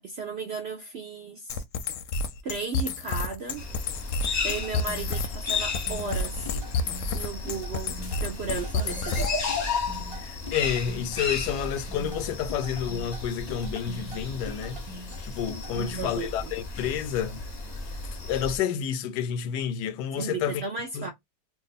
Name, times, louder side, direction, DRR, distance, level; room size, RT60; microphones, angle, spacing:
voice 1, 0.0-1.6 2.4-3.6 4.4-6.5 7.1-9.3 15.7-16.5 20.2-21.1, right 4 dB, 70° right, 0.6 m, -35 dB
sound 1, 1.5-9.5, left 4 dB, 70° left, 0.8 m, -30 dB
sound 2, 3.6-18.6, left 4 dB, 35° left, 0.7 m, -34 dB
sound 3, 4.5-16.0, equal, 25° right, 1.0 m, -43 dB
voice 2, 10.2-14.8 15.2-17.4 18.3-20.6 20.9-21.1, left 8 dB, 90° left, 1.1 m, -30 dB
2.6 x 2.4 x 4.0 m
omnidirectional pair, 1.7 m